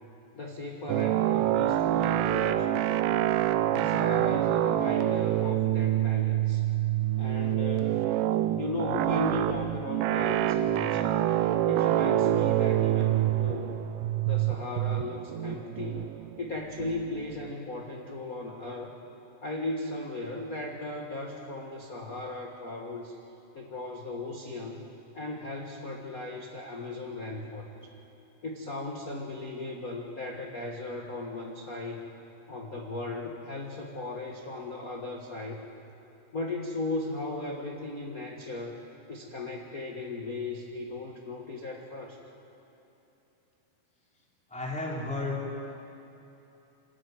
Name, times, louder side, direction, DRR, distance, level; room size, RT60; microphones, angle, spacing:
voice 1, 0.3-3.1 3.7-6.6 7.2-8.0 8.6-11.2 11.7-13.8 14.2-16.1 16.4-19.0 19.4-23.1 23.5-24.9 25.1-27.9 28.4-32.0 32.5-35.6 36.3-38.8 39.1-42.2, left 2 dB, 85° left, 0 dB, 0.7 m, -37 dB
sound 1, 0.9-17.4, right 12 dB, 75° right, 2.1 m, -26 dB
voice 2, 44.5-45.4 45.7-45.8, left 2 dB, ahead, -3 dB, 2.9 m, -33 dB
26.0 x 13.5 x 9.3 m, 2.9 s
omnidirectional pair, 4.2 m